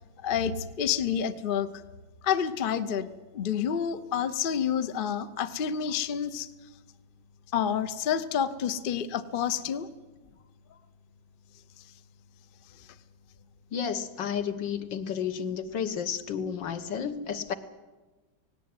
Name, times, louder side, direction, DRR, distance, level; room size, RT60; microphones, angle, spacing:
voice 1, 0.2-1.7 2.2-3.1 3.3-6.5 7.5-9.9, left 8 dB, 50° left, 11 dB, 0.6 m, -28 dB
voice 2, 13.7-17.5, left 7 dB, 70° left, 9 dB, 1.8 m, -32 dB
18.0 x 17.5 x 9.6 m, 1.3 s
omnidirectional pair, 2.1 m